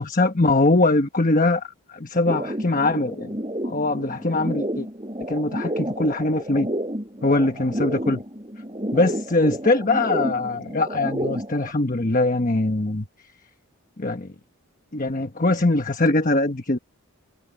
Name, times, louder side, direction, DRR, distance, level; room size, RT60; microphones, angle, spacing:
voice 1, 0.0-3.3 3.6-4.9 5.3-6.7 7.2-8.2 8.9-13.1 14.0-14.3 14.9-16.8, left 2 dB, 35° left, 1.2 m, -22 dB
sound 1, 2.3-11.7, right 1 dB, 20° right, 7.7 m, -30 dB
head